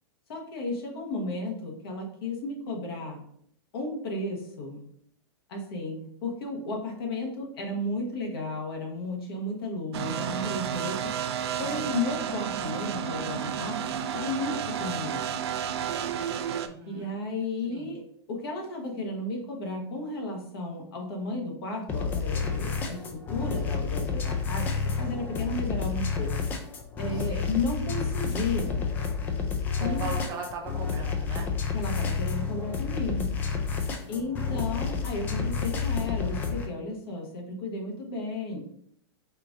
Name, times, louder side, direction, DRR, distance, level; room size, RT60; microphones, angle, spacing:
voice 1, 0.3-3.2 3.7-4.8 5.5-11.0 11.6-13.8 14.1-15.3 16.9-18.0 18.3-26.4 27.0-28.9 29.8-30.1 31.7-33.4 34.1-38.6, left 2 dB, 60° left, 1 dB, 1.2 m, -33 dB
sound 1, 9.9-16.7, right 8 dB, 70° right, 0.4 m, -31 dB
voice 2, 16.5-17.2 17.7-17.9 27.1-27.5 29.8-31.5 34.0-34.4, right 4 dB, 25° right, 2 dB, 0.7 m, -39 dB
sound 2, 21.9-36.7, left 5 dB, 15° left, 0.3 m, -30 dB
4.5 x 2.6 x 3.5 m, 0.68 s
supercardioid pair, 160°, 14 cm